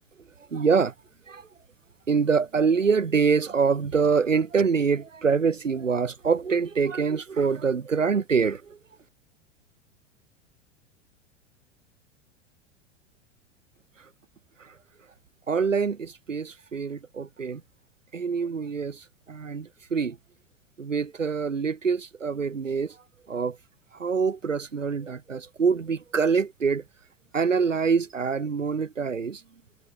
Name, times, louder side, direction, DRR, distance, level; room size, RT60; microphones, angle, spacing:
voice 1, 0.5-0.9 1.3-1.4 2.1-8.6 15.5-17.6 18.1-19.0 19.3-20.2 20.8-22.9 23.3-23.5 24.0-26.8 27.3-29.4, right 5 dB, 85° right, 4.3 m, -25 dB
figure-of-eight pair, 90°, 37 cm